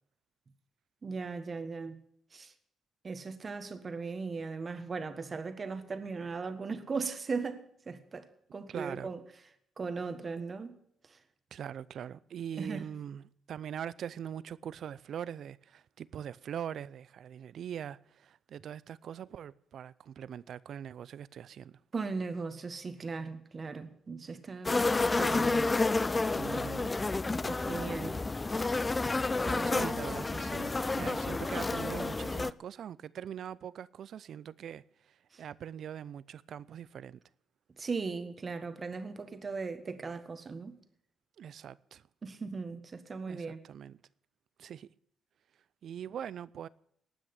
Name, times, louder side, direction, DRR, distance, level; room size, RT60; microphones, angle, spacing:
voice 1, 1.0-2.0 2.3-2.5 3.0-9.2 9.8-10.7 12.6-12.8 21.9-25.8 26.5-26.6 27.4-28.2 29.4-29.9 30.8-31.2 35.3-35.4 37.8-40.8 42.2-43.6, right 4 dB, 35° right, 1.6 m, -38 dB
voice 2, 8.7-9.1 11.5-21.8 26.4-26.9 29.7-37.2 41.4-42.0 43.3-44.0 44.6-44.9 45.8-46.7, right 9 dB, 65° right, 0.5 m, -42 dB
sound 1, 24.6-32.5, left 3 dB, 20° left, 0.5 m, -30 dB
18.5 x 6.3 x 8.7 m
cardioid pair, 90°, 0 cm